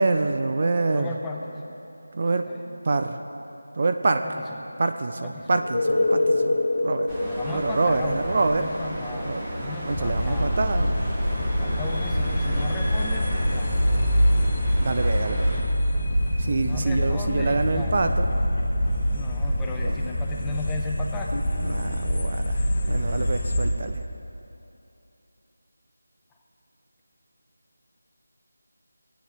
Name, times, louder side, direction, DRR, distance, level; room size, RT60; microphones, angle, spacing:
voice 1, 0.0-1.1 2.1-2.5 2.8-3.2 3.7-4.2 4.8-6.6 6.8-7.1 7.5-8.7 9.2-9.4 9.8-11.0 14.8-15.5 16.4-18.3 19.8-20.0 21.6-24.0, right 3 dB, 40° right, 6 dB, 0.4 m, -26 dB
voice 2, 0.9-1.8 2.3-2.6 4.2-4.3 5.2-5.5 6.0-6.2 7.2-10.6 11.6-13.8 16.5-18.2 19.1-21.3, left 3 dB, 5° left, -1 dB, 0.6 m, -36 dB
sound 1, 5.5-17.1 21.3-21.4, left 2 dB, 60° left, 1.1 m, -30 dB
sound 2, 7.1-15.6, equal, 10° right, 1.3 m, -34 dB
sound 3, 9.9-23.7, equal, 30° left, 1.2 m, -25 dB
16.5 x 9.1 x 3.4 m, 2.9 s
figure-of-eight pair, 170°, 0 cm